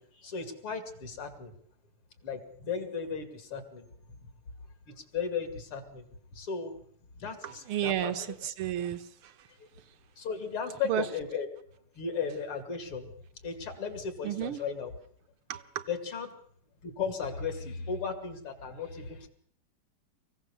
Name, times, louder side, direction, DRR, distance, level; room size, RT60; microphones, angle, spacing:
voice 1, 0.0-1.5 2.2-3.9 4.9-6.1 6.3-6.7 7.2-8.1 9.6-9.7 10.2-11.5 11.9-13.1 13.4-14.9 15.9-16.3 16.8-19.3, left 6 dB, 75° left, 7 dB, 3.4 m, -36 dB
voice 2, 7.4-9.5 10.8-11.0 14.2-14.6 15.5-15.8, right 11 dB, 75° right, 10 dB, 1.9 m, -33 dB
24.5 x 16.0 x 6.9 m, 0.64 s
omnidirectional pair, 2.4 m